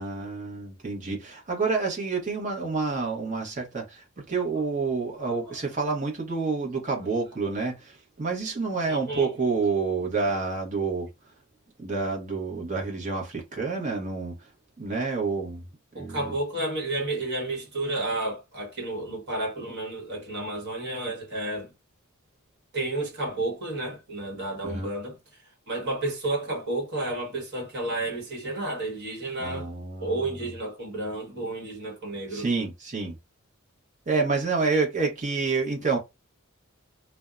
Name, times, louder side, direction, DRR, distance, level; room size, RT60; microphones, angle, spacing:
voice 1, 0.0-11.1 11.8-14.5 14.8-15.6 15.9-16.3 24.6-24.9 29.4-30.3 32.3-33.2 34.1-36.0, right 4 dB, 35° right, 0.9 m, -28 dB
voice 2, 5.2-5.6 8.9-9.3 15.9-21.7 22.7-29.7 30.0-32.5, right 2 dB, 50° right, 1.3 m, -31 dB
2.6 x 2.1 x 2.3 m
head